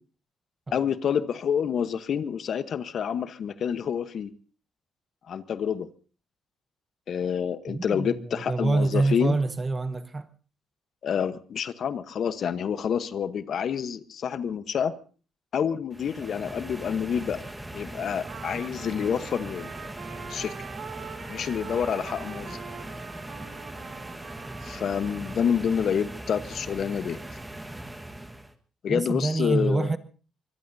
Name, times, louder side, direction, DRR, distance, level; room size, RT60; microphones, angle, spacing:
voice 1, 0.7-4.3 5.3-5.9 7.1-9.4 11.0-14.9 15.5-17.5 17.7-19.9 20.3-20.5 21.3-22.6 24.6-27.2 28.8-29.9, left 7 dB, 60° left, 1.0 m, -28 dB
voice 2, 7.7-10.3 28.9-30.0, right 3 dB, 25° right, 1.0 m, -26 dB
sound 1, 15.9-28.5, right 1 dB, 10° right, 1.4 m, -40 dB
Trumpet, 18.2-25.5, right 7 dB, 60° right, 2.4 m, -43 dB
24.0 x 21.5 x 2.7 m
cardioid pair, 90°, 0 cm